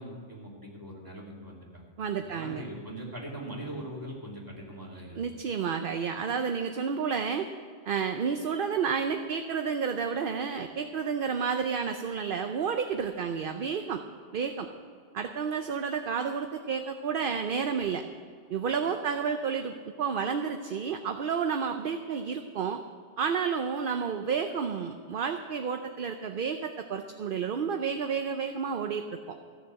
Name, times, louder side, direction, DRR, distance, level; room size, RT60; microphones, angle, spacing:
voice 1, 0.0-1.9 2.2-5.2, right 1 dB, 15° right, -3 dB, 2.6 m, -41 dB
voice 2, 2.0-2.6 5.2-7.5 7.9-14.0 14.3-14.7 15.1-18.0 18.5-22.8 23.2-29.0, right 6 dB, 55° right, 6 dB, 0.8 m, -30 dB
14.5 x 6.8 x 7.6 m, 2.1 s
omnidirectional pair, 1.2 m